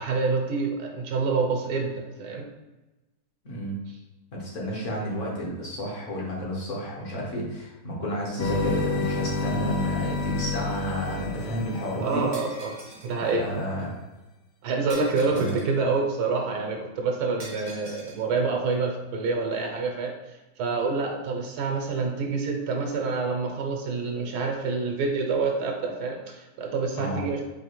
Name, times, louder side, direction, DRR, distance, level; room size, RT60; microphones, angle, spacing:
voice 1, 0.0-2.5 12.0-12.8 13.0-13.4 14.6-27.4, right 4 dB, 80° right, 1 dB, 1.2 m, -27 dB
voice 2, 3.4-3.8 4.3-12.2 13.3-14.0 15.3-15.5 27.0-27.3, equal, 55° left, -3 dB, 1.3 m, -31 dB
sound 1, 8.4-12.6, left 4 dB, 90° left, 1.2 m, -29 dB
Shatter, 12.3-13.1 14.9-15.8 17.4-18.2, right 2 dB, 45° right, 0.5 m, -44 dB
4.5 x 2.7 x 3.0 m, 1.1 s
omnidirectional pair, 1.7 m